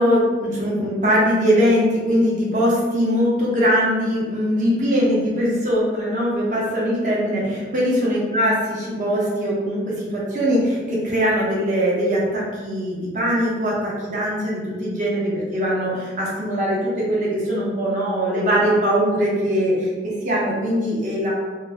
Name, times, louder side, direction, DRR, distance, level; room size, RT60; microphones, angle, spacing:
voice 1, 0.0-21.3, equal, 40° right, -5 dB, 0.8 m, -21 dB
2.9 x 2.1 x 3.5 m, 1.4 s
head